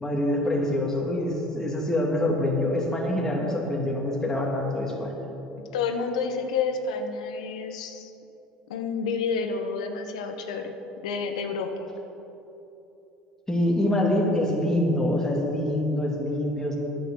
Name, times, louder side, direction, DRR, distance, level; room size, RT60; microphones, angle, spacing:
voice 1, 0.0-5.2 13.5-16.8, left 1 dB, 15° left, -2 dB, 2.3 m, -25 dB
voice 2, 5.7-8.1 8.7-10.7 11.0-11.9, left 5 dB, 85° left, 6 dB, 1.1 m, -29 dB
9.7 x 8.3 x 7.1 m, 3.0 s
hypercardioid pair, 75°, 4 cm